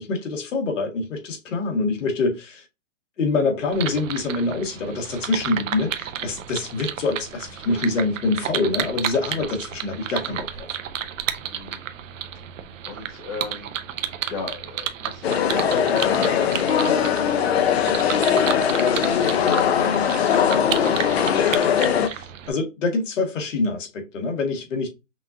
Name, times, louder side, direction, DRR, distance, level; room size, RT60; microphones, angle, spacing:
voice 1, 0.0-2.7 3.2-10.8 22.0-24.9, left 3 dB, 70° left, 1.7 m, -25 dB
sound 1, 3.7-22.5, right 9 dB, 75° right, 0.8 m, -32 dB
voice 2, 11.4-11.8 12.8-13.7 14.3-19.0, left 4 dB, 20° left, 1.3 m, -35 dB
sound 2, 15.2-22.1, left 8 dB, 55° left, 0.7 m, -20 dB
5.8 x 2.5 x 2.6 m
hypercardioid pair, 165°, 38 cm